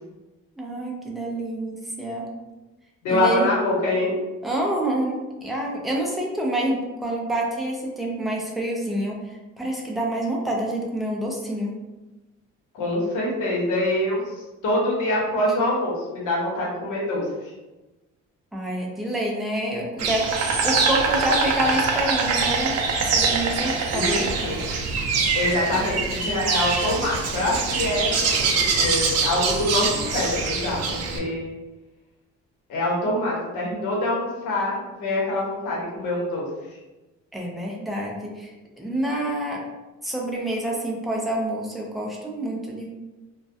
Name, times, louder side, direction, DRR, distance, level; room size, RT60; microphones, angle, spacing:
voice 1, 0.6-2.3 3.1-3.5 4.4-9.2 9.6-11.8 18.5-22.7 23.0-24.3 37.3-39.6 40.0-42.9, right 1 dB, ahead, -2 dB, 0.4 m, -27 dB
voice 2, 3.0-4.1 12.7-17.5 23.9-24.6 25.3-31.5 32.7-36.5, left 1 dB, 75° left, -4 dB, 0.9 m, -25 dB
Insect, 20.0-31.2, right 4 dB, 55° right, 0.5 m, -24 dB
2.3 x 2.1 x 2.6 m, 1.1 s
cardioid pair, 115°, 31 cm